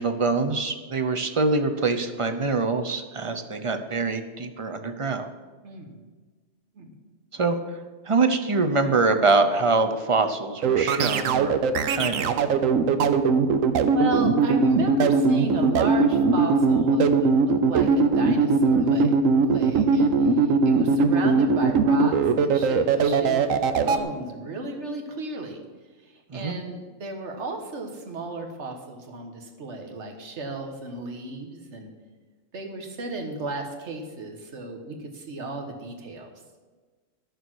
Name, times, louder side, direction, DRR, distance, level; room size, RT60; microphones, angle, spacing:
voice 1, 0.0-5.3 7.3-7.6 8.1-12.4 26.3-26.6, right 3 dB, 35° right, 8 dB, 0.5 m, -24 dB
sound 1, 10.6-24.0, right 5 dB, 75° right, 1.1 m, -20 dB
voice 2, 13.9-19.1 19.4-25.6 26.3-31.9 32.5-36.3, right 2 dB, 60° right, 3 dB, 1.6 m, -34 dB
12.5 x 6.8 x 6.3 m, 1.4 s
omnidirectional pair, 1.4 m